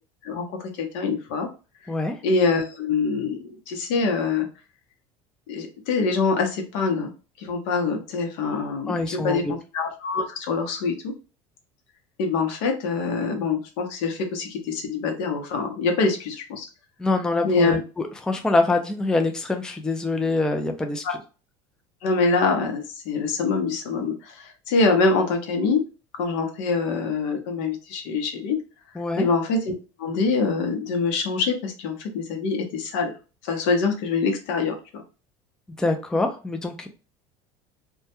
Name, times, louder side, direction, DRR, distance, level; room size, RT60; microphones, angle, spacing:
voice 1, 0.2-1.5 2.2-4.5 5.5-7.1 7.4-11.1 12.2-16.7 17.4-17.8 21.0-21.2 22.0-25.8 26.1-28.6 29.2-29.7 30.0-33.1 33.4-35.0, left 4 dB, 75° left, 4 dB, 0.8 m, -24 dB
voice 2, 8.9-9.4 17.0-21.2 29.0-29.3 35.8-36.9, left 2 dB, 5° left, 5 dB, 0.3 m, -25 dB
2.2 x 2.2 x 2.8 m, 0.33 s
supercardioid pair, 110°, 15 cm